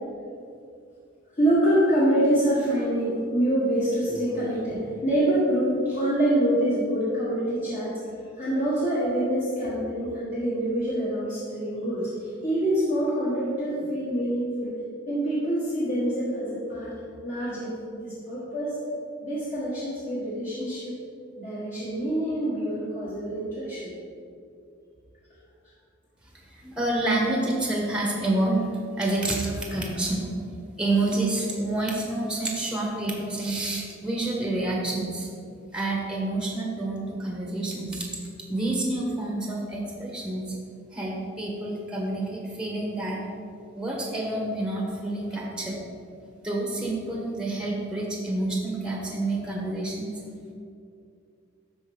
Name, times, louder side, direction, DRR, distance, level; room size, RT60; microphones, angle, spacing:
voice 1, 1.4-7.9 8.4-12.1 12.4-14.7 15.1-16.9 17.2-18.7 19.2-20.9 21.4-23.9, right 1 dB, 40° left, -10 dB, 1.5 m, -26 dB
voice 2, 26.5-28.7 29.0-30.3 30.8-35.3 35.7-38.0 38.5-40.5 40.9-43.2 43.8-45.8 46.4-50.1, right 2 dB, 5° right, -2 dB, 0.9 m, -28 dB
12.5 x 4.3 x 3.6 m, 2.5 s
head